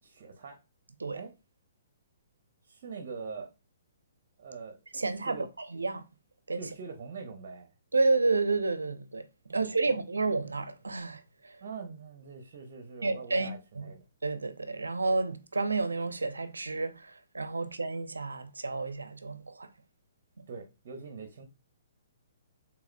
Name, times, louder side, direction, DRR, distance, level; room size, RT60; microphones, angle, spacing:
voice 1, 0.0-0.6 1.1-1.3 2.7-3.5 4.4-5.5 6.6-7.7 9.5-9.7 11.6-14.1 20.5-21.4, right 5 dB, 50° right, 0.9 m, -43 dB
voice 2, 4.9-6.0 6.5-6.6 7.9-9.3 9.5-11.6 13.0-13.8 14.2-19.7, right 3 dB, 85° right, 0.6 m, -30 dB
4.7 x 3.6 x 2.2 m
figure-of-eight pair, 125°, 0 cm